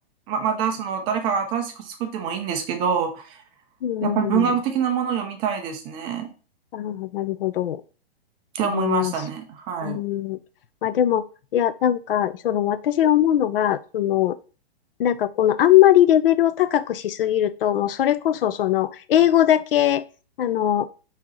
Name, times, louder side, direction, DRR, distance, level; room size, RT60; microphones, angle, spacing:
voice 1, 0.3-3.4 4.0-6.3 8.5-10.0, right 7 dB, 15° right, 5 dB, 0.4 m, -25 dB
voice 2, 3.8-4.5 6.7-7.8 8.6-9.1 9.8-10.4 10.8-11.2 11.5-14.4 15.0-20.0 20.4-20.9, left 11 dB, 60° left, 14 dB, 0.5 m, -20 dB
4.6 x 2.8 x 3.7 m, 0.36 s
hypercardioid pair, 125°, 32 cm